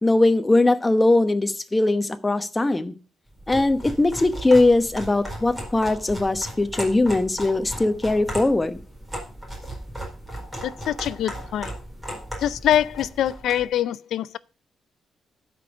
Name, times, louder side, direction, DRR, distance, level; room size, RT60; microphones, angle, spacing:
voice 1, 0.0-2.9 3.5-8.8, left 2 dB, 15° left, 0.9 m, -20 dB
sound 1, 3.4-13.7, equal, 10° right, 4.5 m, -36 dB
voice 2, 10.6-11.7 12.4-14.4, left 11 dB, 90° left, 0.5 m, -24 dB
12.5 x 5.3 x 6.2 m
cardioid pair, 135°, 0 cm